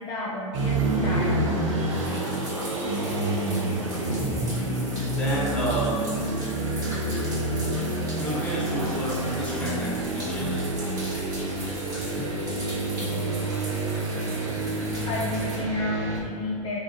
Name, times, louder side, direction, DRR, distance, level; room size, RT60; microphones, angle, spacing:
voice 1, 0.0-1.4 4.4-5.2 12.2-12.4 13.0-13.6 14.2-14.6 15.1-16.8, left 2 dB, 30° left, -5 dB, 0.4 m, -33 dB
sound 1, 0.5-16.2, right 2 dB, 70° right, 0.6 m, -28 dB
sound 2, 1.9-15.6, equal, 20° right, 1.0 m, -40 dB
voice 2, 4.9-6.1 8.2-10.7, equal, 5° left, -7 dB, 1.0 m, -30 dB
3.0 x 2.4 x 2.6 m, 2.1 s
hypercardioid pair, 90°, 17 cm